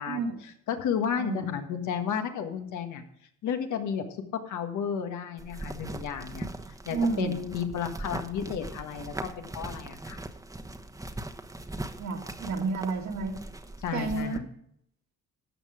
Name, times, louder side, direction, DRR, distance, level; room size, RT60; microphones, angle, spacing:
voice 1, 0.0-3.0 3.4-4.0 4.3-6.5 6.8-10.2 13.8-14.4, left 7 dB, 75° left, 6 dB, 1.6 m, -32 dB
sound 1, 5.4-14.4, right 2 dB, 10° right, 1.1 m, -40 dB
voice 2, 6.9-7.3 12.0-13.4 13.9-14.4, right 3 dB, 65° right, 3 dB, 2.1 m, -30 dB
13.0 x 7.8 x 4.9 m, 0.70 s
cardioid pair, 90°, 30 cm